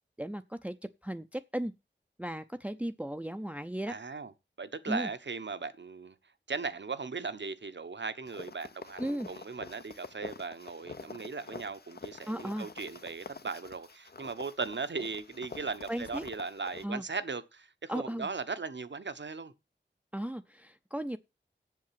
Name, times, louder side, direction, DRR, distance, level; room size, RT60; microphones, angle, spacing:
voice 1, 0.2-0.8 1.0-1.7 2.2-4.0 4.9-5.1 9.0-9.3 12.3-12.7 15.9-16.2 16.8-17.0 17.9-18.3 20.1-21.2, right 1 dB, 5° right, 0.6 m, -35 dB
voice 2, 3.9-4.3 4.6-6.1 6.5-19.5, right 4 dB, 70° right, 1.2 m, -38 dB
sound 1, 8.2-16.8, left 4 dB, 55° left, 0.9 m, -47 dB
7.5 x 7.2 x 7.6 m
wide cardioid pair, 50°, 19 cm